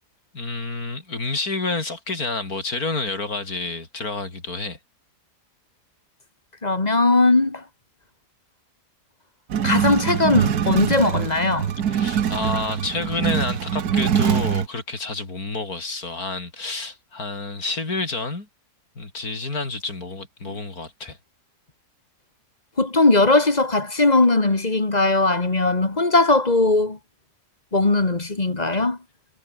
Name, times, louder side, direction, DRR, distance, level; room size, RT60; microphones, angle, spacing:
voice 1, 0.3-4.8 11.8-18.5 19.0-21.2, left 3 dB, 60° left, 4.9 m, -29 dB
voice 2, 6.6-7.6 9.6-11.7 22.8-27.0 27.7-29.0, left 2 dB, 25° left, 2.0 m, -19 dB
sound 1, 9.5-14.7, right 8 dB, 65° right, 1.7 m, -23 dB
omnidirectional pair, 1.8 m